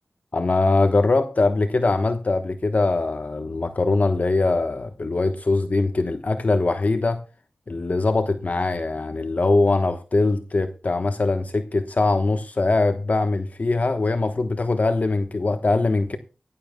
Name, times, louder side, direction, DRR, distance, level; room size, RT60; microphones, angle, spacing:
voice 1, 0.3-7.2 7.7-16.2, left 3 dB, 60° left, 1.1 m, -22 dB
17.0 x 11.5 x 2.2 m
cardioid pair, 45°, 3 cm